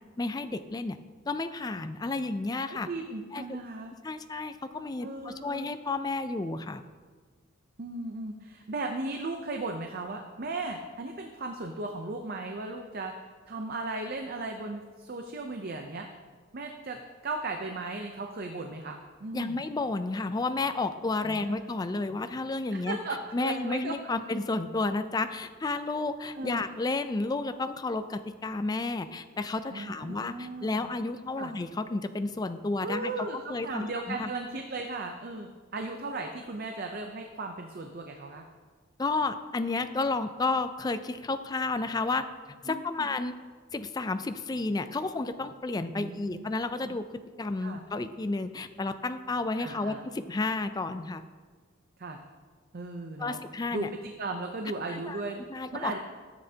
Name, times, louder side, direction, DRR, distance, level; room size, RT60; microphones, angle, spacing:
voice 1, 0.2-1.0 1.3-2.9 3.3-3.6 4.0-6.8 19.3-23.0 23.3-34.3 39.0-42.3 42.6-43.3 43.7-47.0 47.4-51.2 53.2-53.9 54.9-55.2 55.5-56.0, left 3 dB, 20° left, 10 dB, 0.3 m, -31 dB
voice 2, 2.8-3.9 5.0-5.7 7.8-13.1 13.5-16.1 16.5-17.0 17.2-19.6 21.2-21.7 22.7-24.2 26.3-26.6 29.7-30.9 31.4-31.5 32.8-38.5 42.7-43.1 46.0-46.4 46.8-47.0 47.6-47.8 49.6-50.0 52.0-52.2 52.7-53.4 53.7-55.4 55.7-56.0, right 2 dB, 50° right, 4 dB, 0.6 m, -36 dB
13.0 x 7.9 x 2.8 m, 1.5 s
head